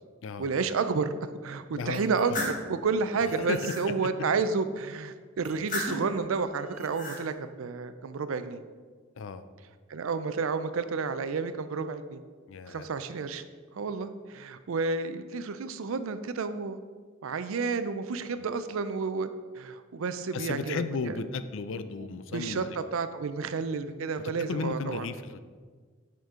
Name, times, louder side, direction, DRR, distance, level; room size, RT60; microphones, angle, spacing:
voice 1, 0.4-8.6 9.9-12.2 12.7-13.4 13.7-16.8 17.2-19.3 19.5-21.2 22.0-22.6 22.9-25.1, right 4 dB, 75° right, 11 dB, 0.4 m, -31 dB
voice 2, 1.7-2.5 3.4-3.7 9.2-9.4 12.5-12.9 20.3-22.8 24.2-25.4, left 4 dB, 65° left, 11 dB, 0.4 m, -34 dB
sound 1, 1.9-2.6 3.2-3.9 5.4-6.1 6.7-7.2, left 1 dB, 40° left, 1.4 m, -35 dB
7.9 x 5.2 x 3.7 m, 1.5 s
head